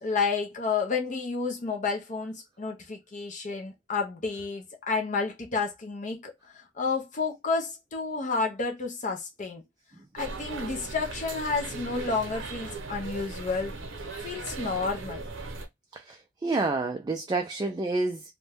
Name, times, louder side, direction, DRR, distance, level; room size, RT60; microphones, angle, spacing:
voice 1, 0.0-9.6 10.1-13.7 14.2-15.2, left 4 dB, 40° left, 0.5 m, -30 dB
sound 1, 10.2-15.7, right 3 dB, 85° right, 0.7 m, -38 dB
voice 2, 15.9-18.2, right 3 dB, 20° right, 0.3 m, -29 dB
2.6 x 2.2 x 3.3 m
head